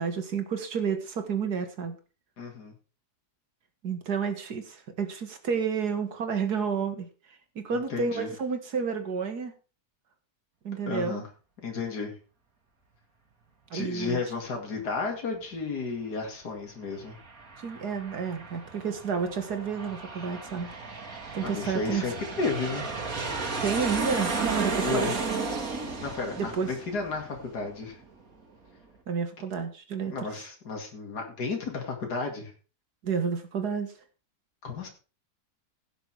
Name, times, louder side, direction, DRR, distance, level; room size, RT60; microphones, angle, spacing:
voice 1, 0.0-2.0 3.8-7.1 7.6-9.5 10.6-11.2 13.7-14.2 17.6-20.7 21.3-22.2 23.6-25.4 26.4-26.7 29.1-30.3 33.0-33.9, right 6 dB, 75° right, 7 dB, 2.3 m, -30 dB
voice 2, 2.4-2.7 7.7-8.3 10.9-11.3 11.6-12.2 13.7-17.2 21.4-23.0 24.8-25.1 26.0-28.0 30.1-32.5 34.6-34.9, left 4 dB, 80° left, 2 dB, 2.9 m, -33 dB
Aircraft, 16.9-28.0, right 4 dB, 60° right, 2.5 m, -34 dB
16.0 x 6.9 x 4.7 m, 0.35 s
omnidirectional pair, 1.7 m